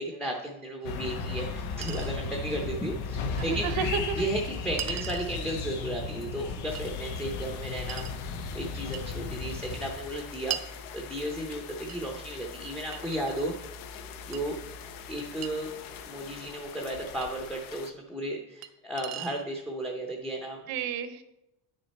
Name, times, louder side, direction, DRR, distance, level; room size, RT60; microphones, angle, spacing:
voice 1, 0.0-3.7 4.2-13.6 14.3-14.6 15.1-15.7 16.1-20.6, right 1 dB, 5° left, 1 dB, 0.6 m, -34 dB
sound 1, 0.8-9.9, left 4 dB, 90° left, 1.1 m, -35 dB
Chink clink, 0.8-0.9 1.8-2.2 3.4-3.5 4.8-5.3 6.8-6.9 7.9-8.2 8.9-9.1 10.5-10.7 11.9-12.0 12.9-13.7 14.3-14.4 15.4-15.5 17.2-17.3 18.6-18.7 19.0-19.5, right 11 dB, 45° right, 0.6 m, -38 dB
voice 2, 3.4-4.2 4.9-5.0 20.7-21.2, right 7 dB, 75° right, 10 dB, 1.0 m, -32 dB
sound 2, 6.7-17.9, left 6 dB, 65° left, 0.7 m, -44 dB
9.2 x 6.5 x 4.1 m, 0.90 s
cardioid pair, 170°, 37 cm